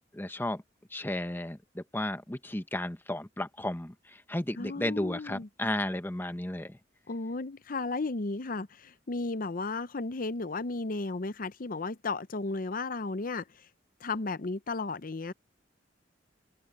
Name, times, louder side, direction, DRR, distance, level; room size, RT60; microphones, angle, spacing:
voice 1, 0.1-0.6 0.9-6.8, left 1 dB, 10° left, 1.0 m, -34 dB
voice 2, 4.6-5.5 7.1-8.7 9.1-13.4 14.0-15.3, left 3 dB, 50° left, 0.7 m, -34 dB
head